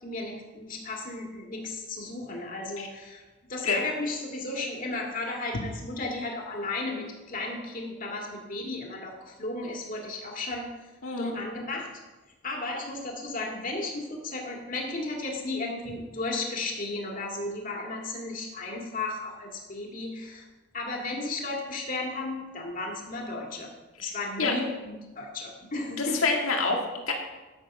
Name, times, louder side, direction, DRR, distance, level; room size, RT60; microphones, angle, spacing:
voice 1, 0.0-3.2 3.5-10.8 11.2-11.9 12.4-20.4 20.7-23.7 24.0-26.3, left 2 dB, 40° left, 0 dB, 2.1 m, -34 dB
voice 2, 11.0-11.3 24.4-24.5 26.0-27.1, left 4 dB, 90° left, 1 dB, 1.9 m, -27 dB
12.5 x 7.0 x 5.4 m, 1.2 s
head